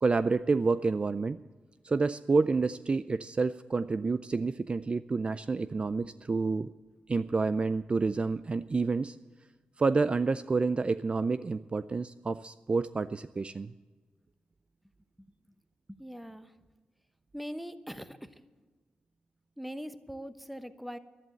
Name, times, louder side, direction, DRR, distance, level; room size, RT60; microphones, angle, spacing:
voice 1, 0.0-1.4 1.8-6.7 7.1-9.2 9.8-13.7, right 4 dB, 35° right, 13 dB, 0.4 m, -29 dB
voice 2, 15.9-16.5 17.3-18.4 19.6-21.0, equal, ahead, 11 dB, 0.9 m, -41 dB
11.5 x 11.0 x 7.8 m, 1.3 s
cardioid pair, 60°, 3 cm